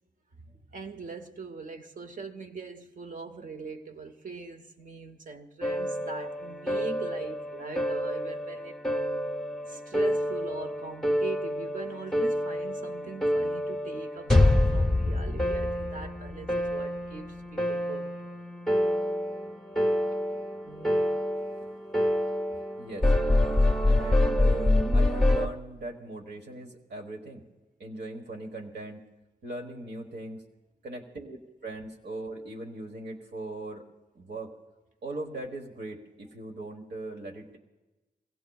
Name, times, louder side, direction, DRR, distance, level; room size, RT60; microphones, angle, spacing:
voice 1, 0.4-8.8 9.7-18.1 23.8-23.9, right 4 dB, 50° right, 1.0 m, -41 dB
sound 1, 5.6-25.5, left 1 dB, 5° left, 0.9 m, -27 dB
voice 2, 20.6-21.1 21.6-21.7 22.8-23.1 23.8-27.4 27.8-29.0 29.4-30.4 30.8-33.8 34.1-34.5 35.0-37.6, right 2 dB, 75° right, 1.3 m, -39 dB
23.5 x 16.5 x 2.3 m
wide cardioid pair, 180°, 18 cm